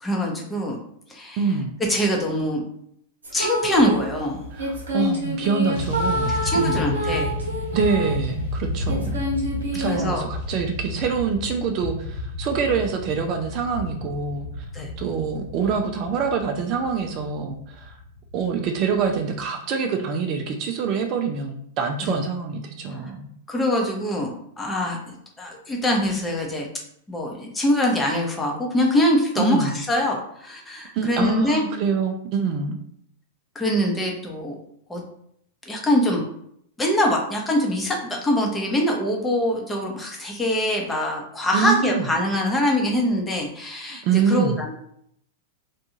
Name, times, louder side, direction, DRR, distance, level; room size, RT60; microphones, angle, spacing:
voice 1, 0.0-0.8 1.1-1.4 1.9-2.6 3.3-4.5 6.3-7.3 9.8-10.2 14.7-14.9 22.0-22.2 22.9-23.1 23.5-26.7 27.1-31.6 33.5-34.6 34.9-35.0 35.7-36.2 36.8-44.7, left 1 dB, 15° left, 0 dB, 0.7 m, -23 dB
voice 2, 1.4-1.7 4.5-6.8 7.7-9.2 9.7-14.6 15.0-18.0 18.3-23.3 29.4-29.7 30.9-32.8 41.5-42.1 44.0-44.6, right 6 dB, 45° right, 3 dB, 0.4 m, -25 dB
sound 1, 3.2-4.0 4.6-8.2 8.9-10.0, equal, 80° right, 0.8 m, -27 dB
sound 2, 3.7-4.9 5.7-19.4, left 2 dB, 60° left, 0.7 m, -32 dB
2.5 x 2.3 x 2.9 m, 0.71 s
hypercardioid pair, 105°, 0 cm